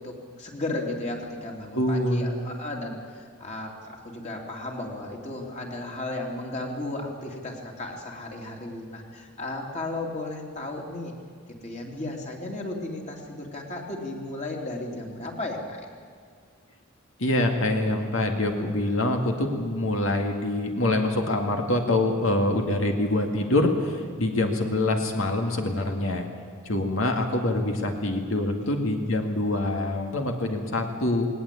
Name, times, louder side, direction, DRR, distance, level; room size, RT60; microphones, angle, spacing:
voice 1, 0.0-11.1 11.6-15.8 28.6-28.7, left 2 dB, 35° left, 0 dB, 3.2 m, -34 dB
voice 2, 1.7-2.3 17.2-26.3 26.7-31.3, left 1 dB, 75° left, 3 dB, 2.3 m, -25 dB
19.5 x 19.0 x 8.5 m, 2.1 s
head